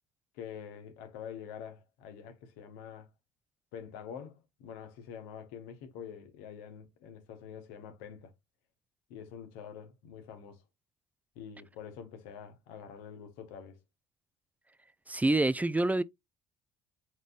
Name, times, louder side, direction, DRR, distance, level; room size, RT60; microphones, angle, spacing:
voice 1, 0.3-3.1 3.7-8.3 9.1-10.6 11.3-13.8, left 8 dB, 70° left, 1.4 m, -46 dB
voice 2, 15.1-16.0, right 2 dB, 10° right, 0.5 m, -26 dB
5.0 x 4.1 x 2.5 m
figure-of-eight pair, 55°, 17 cm